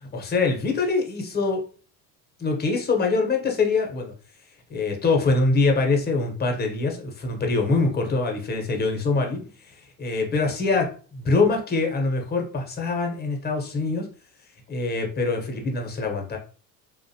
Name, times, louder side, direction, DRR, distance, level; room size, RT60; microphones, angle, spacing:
voice 1, 0.0-1.6 2.4-4.1 4.7-14.1 14.7-16.4, left 3 dB, 20° left, 2 dB, 0.7 m, -24 dB
2.5 x 2.2 x 2.6 m, 0.38 s
hypercardioid pair, 85°, 49 cm